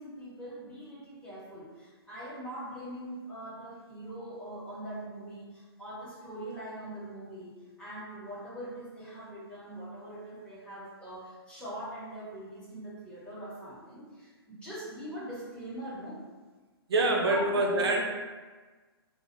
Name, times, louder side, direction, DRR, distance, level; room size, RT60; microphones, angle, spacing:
voice 1, 0.0-16.2 17.2-18.0, right 1 dB, 5° left, -11 dB, 0.9 m, -42 dB
voice 2, 16.9-18.0, right 2 dB, 70° right, 0 dB, 0.6 m, -25 dB
2.1 x 2.0 x 3.1 m, 1.3 s
hypercardioid pair, 140°, 13 cm